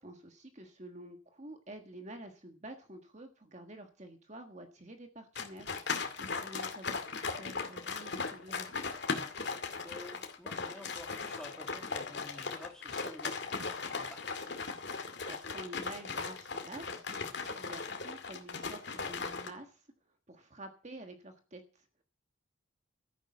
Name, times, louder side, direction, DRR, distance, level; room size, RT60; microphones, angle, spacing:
voice 1, 0.0-5.7 6.3-8.8 15.2-19.9 20.3-22.0, right 1 dB, 35° right, 5 dB, 1.5 m, -49 dB
sound 1, 5.4-19.5, left 4 dB, 55° left, 2.2 m, -38 dB
voice 2, 9.8-14.4, left 1 dB, 5° left, 2 dB, 2.6 m, -51 dB
13.5 x 10.5 x 6.4 m, 0.38 s
head